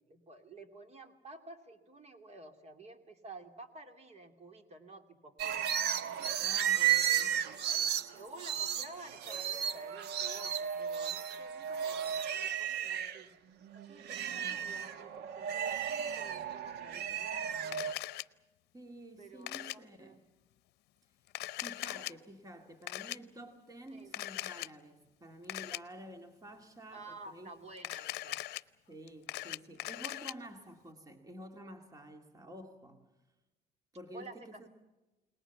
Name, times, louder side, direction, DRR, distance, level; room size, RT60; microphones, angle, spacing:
voice 1, 0.1-5.7 6.7-7.4 7.7-13.3 13.7-17.8 19.2-20.2 21.9-22.1 23.9-24.2 26.9-28.4 34.1-34.7, right 2 dB, 40° right, 7 dB, 2.8 m, -52 dB
sound 1, 5.4-13.2 13.6-17.9, right 9 dB, 80° right, 1.3 m, -34 dB
voice 2, 6.4-7.4 18.7-20.2 21.6-27.5 28.9-33.1 33.9-34.7, right 1 dB, 20° right, 5 dB, 2.2 m, -50 dB
Camera, 17.7-18.2 19.5-19.8 21.3-22.1 22.9-23.2 24.1-24.7 25.5-25.8 27.8-28.6 29.1-30.3, left 16 dB, 75° left, 0.7 m, -39 dB
30.0 x 19.5 x 7.1 m, 1.1 s
cardioid pair, 110°, 17 cm